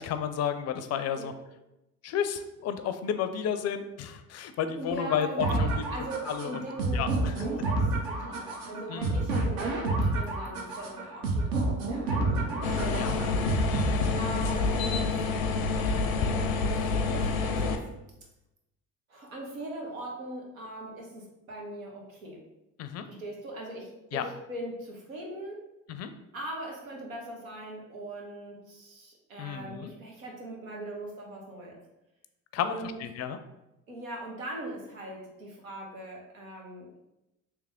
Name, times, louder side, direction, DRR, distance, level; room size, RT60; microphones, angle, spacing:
voice 1, 0.0-1.3 2.0-5.9 6.3-6.6 6.9-7.5 8.9-9.3 12.9-13.1 13.7-14.1 22.8-23.1 24.1-24.2 25.9-26.1 29.4-29.9 32.5-33.4, left 8 dB, 40° left, 10 dB, 0.4 m, -32 dB
voice 2, 4.8-13.4 14.2-15.2 16.2-17.8 19.1-22.4 23.1-25.6 26.3-31.8 32.6-33.0 33.9-37.0, right 1 dB, 90° right, -1 dB, 1.0 m, -40 dB
sound 1, 5.4-14.4, right 2 dB, 60° right, 0.9 m, -29 dB
sound 2, 12.6-17.8, left 4 dB, 90° left, 0.5 m, -28 dB
3.4 x 3.0 x 3.6 m, 0.92 s
hypercardioid pair, 60°, 40 cm